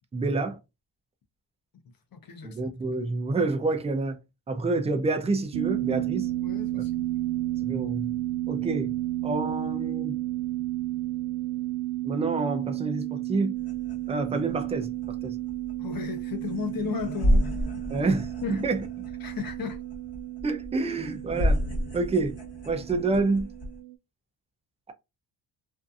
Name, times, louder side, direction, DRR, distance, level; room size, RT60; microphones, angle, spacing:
voice 1, 0.1-0.6 2.4-4.2 4.5-6.3 6.7-6.8 7.6-8.1 8.5-8.9 9.2-10.2 12.0-13.6 14.1-15.4 17.9-18.8 20.4-21.6 21.9-22.4 22.7-23.5, right 3 dB, 15° right, 0.3 m, -28 dB
voice 2, 2.1-2.7 6.4-7.1 15.8-17.5 18.4-18.6 19.2-19.8, left 7 dB, 50° left, 0.6 m, -34 dB
sound 1, 5.5-23.9, right 16 dB, 70° right, 0.5 m, -32 dB
sound 2, 13.5-23.8, equal, 30° left, 1.3 m, -31 dB
2.6 x 2.4 x 2.3 m
cardioid pair, 125°, 46 cm